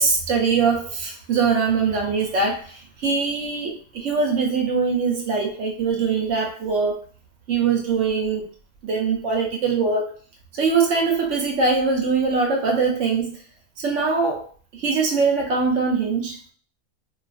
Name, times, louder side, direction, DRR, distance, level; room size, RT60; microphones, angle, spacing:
voice 1, 0.0-7.0 7.5-8.5 8.8-10.2 10.5-13.4 13.8-14.5 14.8-16.5, right 4 dB, 60° right, 0 dB, 0.9 m, -22 dB
2.6 x 2.4 x 2.4 m, 0.40 s
omnidirectional pair, 1.6 m